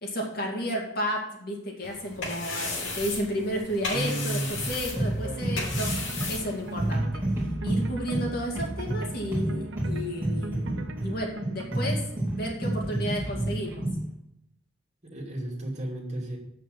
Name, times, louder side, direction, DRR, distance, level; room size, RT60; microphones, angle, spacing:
voice 1, 0.0-5.9 6.3-7.2 7.6-13.8, equal, 50° left, -1 dB, 2.3 m, -32 dB
sound 1, 1.8-6.9, left 3 dB, 80° left, 3.0 m, -35 dB
voice 2, 3.9-4.5 4.9-5.6 15.0-16.4, right 1 dB, 35° right, -1 dB, 2.5 m, -33 dB
sound 2, 4.5-14.1, right 1 dB, 10° right, 2.7 m, -30 dB
sound 3, 5.9-12.2, right 2 dB, 75° right, 1.0 m, -42 dB
7.9 x 6.5 x 7.8 m, 0.77 s
head